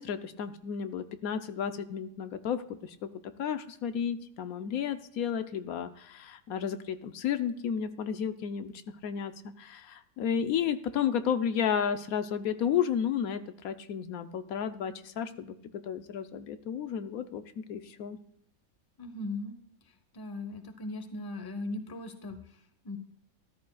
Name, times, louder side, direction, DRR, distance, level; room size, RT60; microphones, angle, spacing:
voice 1, 0.0-8.7 9.0-18.2, left 8 dB, 80° left, 10 dB, 1.2 m, -32 dB
voice 2, 19.0-19.6 20.1-22.6 22.8-23.0, left 2 dB, 20° left, 8 dB, 0.8 m, -38 dB
13.5 x 13.0 x 2.3 m, 0.73 s
omnidirectional pair, 1.5 m